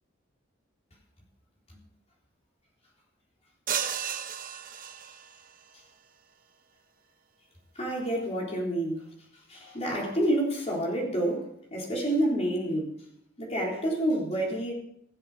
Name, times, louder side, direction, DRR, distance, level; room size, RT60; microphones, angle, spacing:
sound 1, 3.7-5.5, right 8 dB, 45° right, 0.8 m, -33 dB
voice 1, 7.8-9.1 9.5-13.0 13.4-14.7, right 1 dB, 35° left, -2 dB, 3.6 m, -28 dB
16.5 x 7.7 x 5.0 m, 0.72 s
head